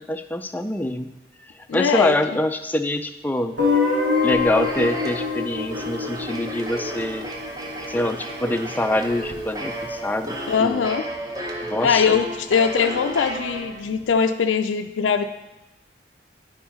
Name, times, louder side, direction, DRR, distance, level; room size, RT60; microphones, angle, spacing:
voice 1, 0.1-1.1 1.6-3.6 4.2-7.3 7.9-10.8 11.6-12.2, left 1 dB, 10° left, 7 dB, 0.3 m, -25 dB
voice 2, 1.7-2.2 10.5-11.0 11.8-15.3, left 6 dB, 85° left, 7 dB, 0.4 m, -21 dB
Guitar, 3.6-8.4, left 4 dB, 80° right, 2.8 m, -25 dB
sound 1, 3.7-14.1, right 1 dB, 20° right, 0.8 m, -33 dB
10.0 x 4.7 x 5.1 m, 1.0 s
head